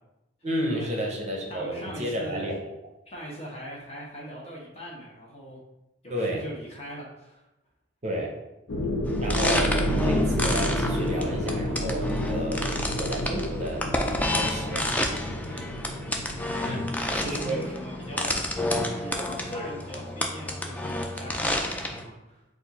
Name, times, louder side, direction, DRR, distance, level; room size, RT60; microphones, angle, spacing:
voice 1, 0.4-2.7 6.1-6.4 8.0-8.3 9.2-12.6 13.0-13.8 14.3-14.8 16.7-16.9 17.2-17.7, right 1 dB, 35° right, 1 dB, 0.6 m, -31 dB
voice 2, 1.5-2.6 3.1-5.6 6.0-7.4 15.5-16.0 16.5-18.4 18.8-22.4, equal, 35° left, -3 dB, 1.0 m, -41 dB
sound 1, 8.7-18.5, left 1 dB, 90° left, 0.6 m, -31 dB
sound 2, 9.1-22.0, left 1 dB, 10° left, 0.3 m, -30 dB
Bass guitar, 9.9-13.7, right 3 dB, 80° right, 0.3 m, -37 dB
4.3 x 2.4 x 4.0 m, 0.93 s
head